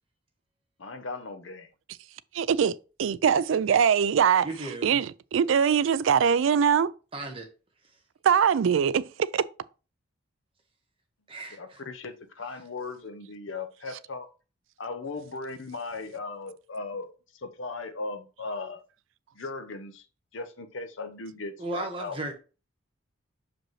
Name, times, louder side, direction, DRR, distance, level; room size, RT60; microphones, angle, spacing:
voice 1, 0.8-1.7 11.6-14.3 14.8-18.8 19.3-20.1 20.3-22.2, left 3 dB, 70° left, 0.8 m, -37 dB
voice 2, 2.3-4.5 4.8-6.9 8.2-9.1 9.3-9.4, right 7 dB, 70° right, 0.3 m, -22 dB
voice 3, 4.4-5.0 7.1-7.5 11.3-11.8 21.6-22.3, right 2 dB, 25° right, 1.2 m, -35 dB
6.1 x 5.1 x 3.1 m
head